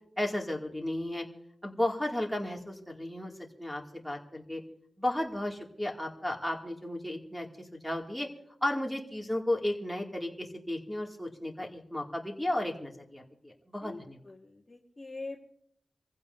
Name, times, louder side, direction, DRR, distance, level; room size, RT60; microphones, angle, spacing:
voice 1, 0.2-1.2 1.6-3.3 3.6-4.6 5.0-7.5 7.7-8.3 8.6-14.2, left 1 dB, ahead, -1 dB, 2.4 m, -34 dB
voice 2, 13.8-15.4, left 3 dB, 25° left, 0 dB, 1.6 m, -43 dB
27.5 x 15.5 x 2.7 m, 0.68 s
wide cardioid pair, 105°, 0 cm